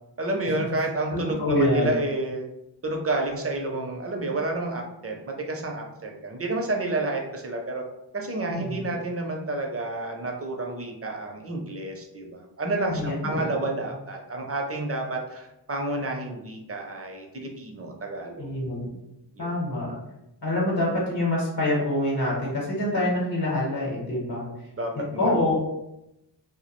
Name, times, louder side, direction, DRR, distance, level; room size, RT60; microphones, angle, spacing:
voice 1, 0.2-2.4 2.8-7.8 8.1-18.5 19.4-19.5 24.7-25.4, right 2 dB, 35° right, 1 dB, 0.5 m, -30 dB
voice 2, 1.1-1.9 8.5-8.9 12.9-13.8 18.4-18.9 19.4-20.0 20.4-24.4 25.2-25.5, left 1 dB, 70° left, -4 dB, 0.8 m, -26 dB
2.2 x 2.0 x 2.9 m, 0.86 s
wide cardioid pair, 60°, 43 cm